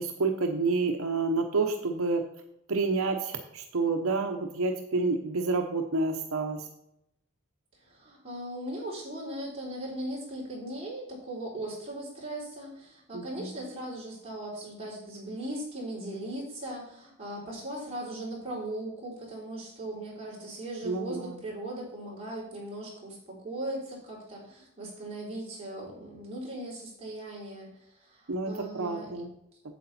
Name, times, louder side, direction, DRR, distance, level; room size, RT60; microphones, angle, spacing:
voice 1, 0.0-2.2 2.7-6.7 13.1-13.5 20.8-21.4 28.3-29.3, right 3 dB, 80° right, 4 dB, 0.8 m, -29 dB
voice 2, 7.9-27.7 28.1-29.1, right 1 dB, 30° right, -5 dB, 3.9 m, -38 dB
8.3 x 7.7 x 4.2 m, 0.79 s
head